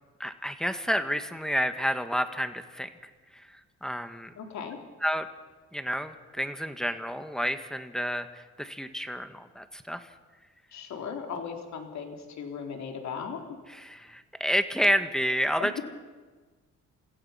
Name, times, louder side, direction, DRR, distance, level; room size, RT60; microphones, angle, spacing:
voice 1, 0.2-4.3 5.0-5.3 5.7-10.1 13.7-15.8, equal, ahead, 9 dB, 1.6 m, -30 dB
voice 2, 4.4-4.8 10.7-13.6 15.6-15.8, left 6 dB, 65° left, 3 dB, 3.8 m, -37 dB
28.5 x 16.0 x 5.8 m, 1.4 s
cardioid pair, 90°, 30 cm